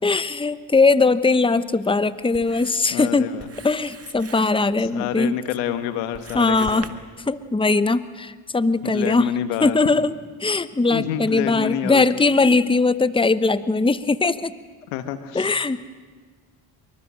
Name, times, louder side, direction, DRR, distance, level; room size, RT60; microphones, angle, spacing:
voice 1, 0.0-3.3 3.6-5.3 6.3-6.9 7.3-9.3 9.6-10.1 10.4-14.5 15.3-15.9, left 3 dB, 10° left, 14 dB, 1.0 m, -20 dB
Writing, 0.7-6.9, right 4 dB, 30° right, 2.0 m, -45 dB
voice 2, 2.9-3.5 4.9-6.9 8.8-9.8 10.9-12.0 14.9-15.5, left 11 dB, 90° left, 10 dB, 1.5 m, -28 dB
25.5 x 23.5 x 7.6 m, 1.5 s
hypercardioid pair, 55°, 49 cm